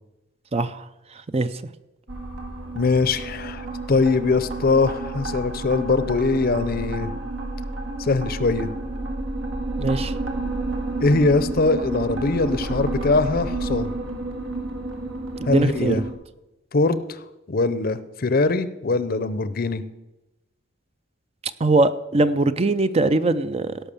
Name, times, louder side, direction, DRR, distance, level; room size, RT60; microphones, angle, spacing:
voice 1, 0.5-0.8 1.3-1.5 9.8-10.1 15.4-15.9 21.6-23.8, right 2 dB, 30° right, 0.5 m, -21 dB
sound 1, 2.1-16.1, right 2 dB, 80° right, 2.1 m, -30 dB
voice 2, 2.7-7.1 8.0-8.7 11.0-13.9 15.5-16.0 16.7-17.2 17.5-19.8, left 3 dB, 50° left, 0.7 m, -22 dB
17.0 x 5.7 x 7.0 m
head